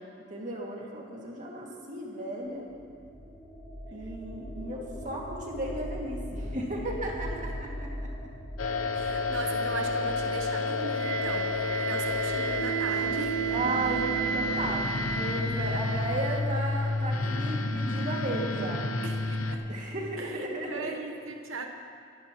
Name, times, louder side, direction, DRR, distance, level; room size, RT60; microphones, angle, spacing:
voice 1, 0.3-2.7 3.9-7.9 13.5-18.8 19.7-21.0, right 1 dB, 40° right, -2 dB, 2.2 m, -34 dB
sound 1, 2.5-17.3, equal, 15° left, 2.2 m, -41 dB
sound 2, 8.6-19.6, left 2 dB, 80° left, 0.7 m, -30 dB
voice 2, 8.9-13.4 19.0-19.7 20.2-21.6, right 3 dB, 75° right, 3 dB, 1.1 m, -39 dB
Wind instrument woodwind instrument, 10.9-16.9, right 7 dB, 20° right, 0.4 m, -34 dB
25.5 x 11.0 x 3.0 m, 2.4 s
head